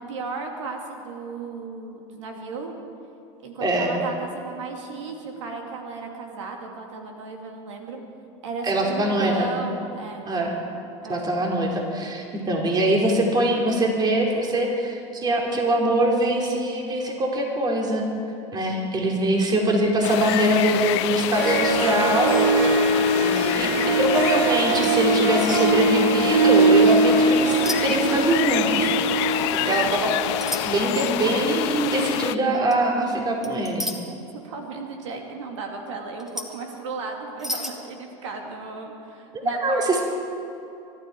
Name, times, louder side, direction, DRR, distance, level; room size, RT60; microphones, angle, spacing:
voice 1, 0.0-2.7 3.4-8.0 8.4-10.2 11.0-11.2 18.4-18.5 23.0-23.2 29.3-30.2 34.3-40.0, right 4 dB, 90° right, 2 dB, 2.5 m, -35 dB
voice 2, 3.6-4.0 8.6-9.5 10.3-10.6 11.1-18.0 18.5-22.4 23.1-29.0 29.5-30.1 30.6-33.9 39.3-40.0, right 1 dB, 25° right, 0 dB, 2.8 m, -23 dB
sound 1, 20.0-32.3, left 17 dB, 70° left, 0.5 m, -27 dB
Harp, 21.0-21.1 21.3-30.9, right 3 dB, 75° right, 2.6 m, -22 dB
sound 2, 27.6-27.8 28.1-28.5 29.3-29.5 30.4-30.7 32.5-32.8 33.4-34.0 36.2-36.6 37.4-37.7, left 1 dB, 5° right, 1.9 m, -31 dB
24.0 x 12.0 x 4.6 m, 2.7 s
supercardioid pair, 105°, 15 cm